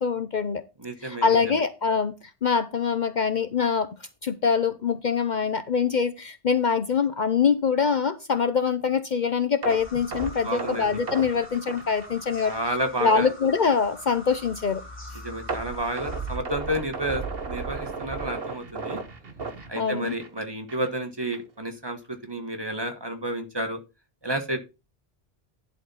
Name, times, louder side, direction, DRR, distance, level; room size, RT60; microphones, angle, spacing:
voice 1, 0.0-0.6 1.0-2.1 2.4-3.9 4.2-12.5 13.0-14.8 19.8-20.1, left 6 dB, 50° left, 0.8 m, -24 dB
voice 2, 0.8-1.4 10.4-10.9 12.4-13.3 15.2-19.0 19.7-23.8 24.2-24.6, right 1 dB, 25° right, 1.5 m, -31 dB
sound 1, 9.6-12.7 13.0-13.1 13.6-13.7 15.5-20.4 20.7-20.9 21.3-21.4, right 4 dB, 65° right, 1.6 m, -34 dB
sound 2, 9.7-16.4, left 1 dB, 10° left, 3.9 m, -44 dB
11.0 x 4.3 x 5.6 m
omnidirectional pair, 1.0 m